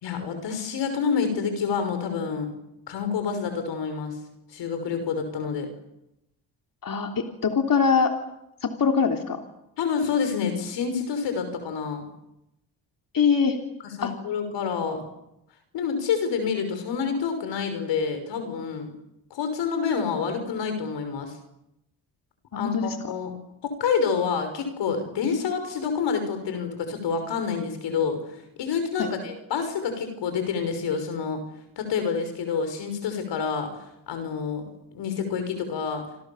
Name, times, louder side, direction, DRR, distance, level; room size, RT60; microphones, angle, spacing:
voice 1, 0.0-2.5 2.9-4.2 4.5-5.7 9.8-12.1 14.0-15.0 15.7-18.9 19.3-21.4 22.6-23.3 23.6-28.2 28.6-31.4 31.8-33.7 34.1-36.1, left 6 dB, 85° left, 8 dB, 5.9 m, -28 dB
voice 2, 6.8-8.1 8.6-9.4 13.1-13.6 14.0-14.1 22.5-23.1 29.0-29.1, left 5 dB, 50° left, 3 dB, 3.4 m, -23 dB
28.5 x 26.0 x 7.3 m, 0.88 s
supercardioid pair, 60°, 42 cm